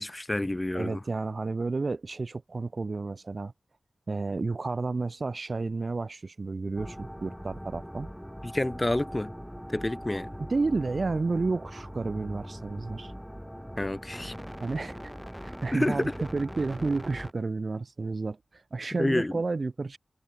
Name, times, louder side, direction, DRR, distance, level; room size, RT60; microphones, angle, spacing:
voice 1, 0.0-1.0 8.4-9.3 9.7-10.3 13.8-14.3 15.7-16.1 19.0-19.3, left 1 dB, 20° left, 3.4 m, -28 dB
voice 2, 0.7-3.5 4.1-8.1 10.5-13.1 14.6-15.1 15.4-20.0, right 3 dB, 50° right, 2.3 m, -31 dB
sound 1, 6.8-17.3, equal, ahead, 1.8 m, -41 dB
wide cardioid pair, 75°, 0 cm